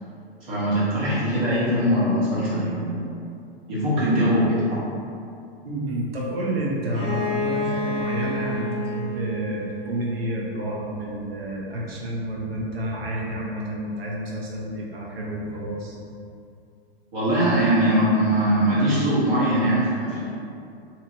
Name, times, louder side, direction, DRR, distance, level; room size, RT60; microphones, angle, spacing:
voice 1, 0.5-3.1 3.7-4.6 17.1-20.2, right 1 dB, 45° right, -9 dB, 1.3 m, -21 dB
voice 2, 5.6-16.0, right 1 dB, 65° right, -3 dB, 0.8 m, -29 dB
Bowed string instrument, 6.9-10.6, left 1 dB, 15° right, 0.9 m, -30 dB
2.9 x 2.5 x 2.7 m, 2.5 s
figure-of-eight pair, 110°, 32 cm